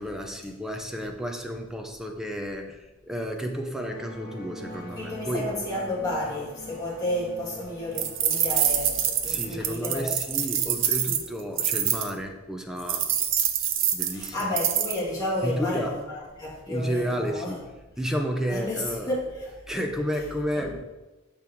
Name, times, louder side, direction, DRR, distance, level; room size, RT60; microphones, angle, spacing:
voice 1, 0.0-5.5 8.6-8.7 9.2-13.1 13.9-14.5 15.4-15.9 16.7-17.6 18.0-19.1 19.7-20.8, equal, ahead, 3 dB, 0.5 m, -31 dB
sound 1, 3.7-12.4, left 1 dB, 40° left, 0.8 m, -45 dB
voice 2, 5.0-10.1 14.1-17.6 18.5-19.8 20.6-20.8, left 1 dB, 15° left, -6 dB, 2.0 m, -31 dB
sound 2, 8.0-12.1 12.9-15.0, right 9 dB, 60° right, 0.6 m, -25 dB
6.7 x 5.4 x 4.5 m, 1.1 s
head